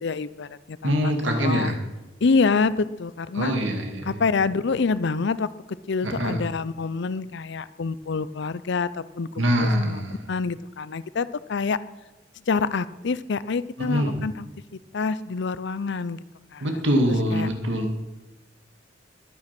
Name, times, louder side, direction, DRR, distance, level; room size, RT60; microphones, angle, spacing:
voice 1, 0.0-1.8 2.2-3.5 4.1-5.5 5.9-8.9 9.2-10.0 10.3-11.8 12.5-14.5 14.9-16.2 16.5-16.6 17.3-17.5, left 4 dB, 65° left, 16 dB, 0.6 m, -26 dB
voice 2, 0.8-1.8 3.3-4.2 6.0-6.4 9.4-10.2 13.8-14.2 16.6-17.9, equal, 75° right, 3 dB, 2.3 m, -24 dB
21.0 x 9.0 x 6.0 m, 1.1 s
head